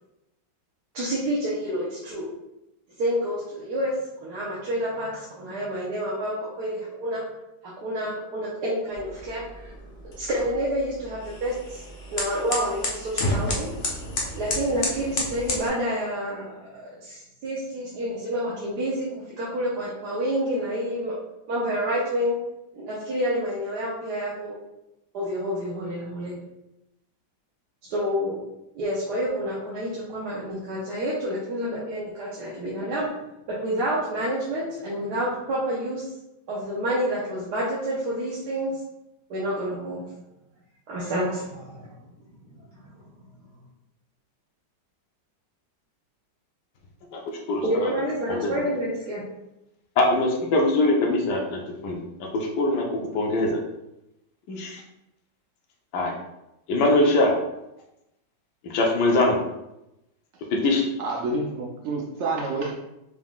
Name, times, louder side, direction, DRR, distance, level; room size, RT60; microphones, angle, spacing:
voice 1, 0.9-2.2 3.0-3.9 4.2-7.2 7.8-9.7 10.2-11.8 12.1-13.7 14.4-16.7 17.0-19.1 19.4-21.2 21.5-22.4 22.7-24.6 25.1-26.4 27.9-28.4 28.8-33.1 33.5-36.0 36.5-38.8 39.3-40.0 40.9-41.9 42.5-42.9 47.6-49.2, equal, 65° right, -7 dB, 1.4 m, -28 dB
sound 1, 8.9-15.7, left 2 dB, 50° left, 0.6 m, -31 dB
voice 2, 47.5-47.9 48.3-48.5 50.0-52.0 52.3-52.8 53.1-53.6 54.5-54.6 55.9-56.1 56.7-57.3 58.6-59.3 60.6-60.9, left 2 dB, 75° left, -1 dB, 1.3 m, -22 dB
voice 3, 61.0-62.7, right 3 dB, 85° right, -1 dB, 0.6 m, -28 dB
4.9 x 3.6 x 2.3 m, 0.90 s
omnidirectional pair, 1.9 m